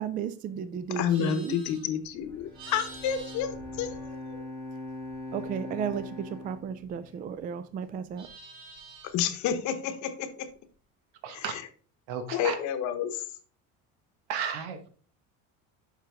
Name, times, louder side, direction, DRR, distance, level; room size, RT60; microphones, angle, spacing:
voice 1, 0.0-1.6 5.3-8.3, right 7 dB, 25° right, 12 dB, 0.3 m, -34 dB
Livestock farm animals working animals, 0.8-4.6 4.9-7.4 7.7-9.3, right 3 dB, 55° right, 3.9 m, -50 dB
voice 2, 1.0-4.5 9.0-10.5 11.3-11.6 12.3-13.2, left 9 dB, 55° left, 9 dB, 1.0 m, -30 dB
Bowed string instrument, 2.2-7.6, left 2 dB, 10° left, 1.1 m, -41 dB
voice 3, 11.2-11.5 12.1-12.6 14.3-14.9, right 7 dB, 85° right, 8 dB, 1.3 m, -33 dB
7.4 x 5.0 x 3.5 m, 0.42 s
cardioid pair, 145°, 34 cm